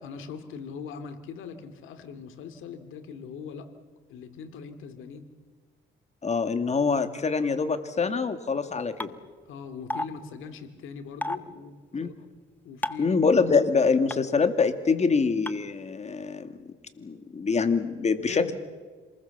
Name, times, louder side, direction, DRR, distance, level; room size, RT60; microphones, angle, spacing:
voice 1, 0.0-3.7 4.1-5.3 9.5-12.2 12.6-13.2 18.2-18.5, left 6 dB, 85° left, 8 dB, 2.5 m, -41 dB
voice 2, 6.2-9.1 11.9-12.1 13.0-18.5, left 4 dB, 35° left, 9 dB, 2.2 m, -25 dB
sound 1, 9.0-9.1 9.9-10.1 11.2-11.4 12.8-13.1 14.1-14.2 15.5-15.6, left 1 dB, 10° left, 1.2 m, -29 dB
27.5 x 20.5 x 7.2 m, 1.4 s
cardioid pair, 90°, 20 cm